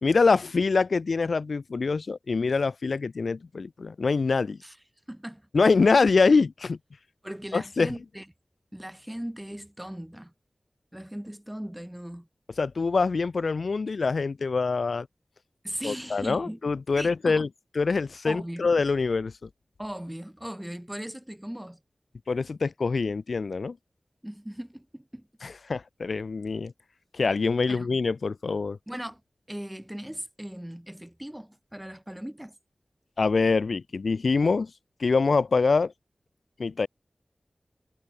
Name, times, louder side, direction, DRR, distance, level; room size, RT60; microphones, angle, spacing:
voice 1, 0.0-4.6 5.5-6.8 7.5-7.9 12.6-15.1 15.8-17.5 17.8-19.5 22.3-23.8 25.4-26.7 27.1-28.8 33.2-34.7 35.0-35.9 36.6-36.9, left 4 dB, 80° left, 4.0 m, -24 dB
voice 2, 5.1-5.4 7.2-8.2 8.7-10.3 10.9-12.3 15.6-16.6 17.0-17.4 18.2-18.7 19.8-21.8 24.2-25.3 27.7-27.9 28.9-29.2 29.5-32.5, equal, 10° right, 6.6 m, -38 dB
wide cardioid pair, 50°, 0 cm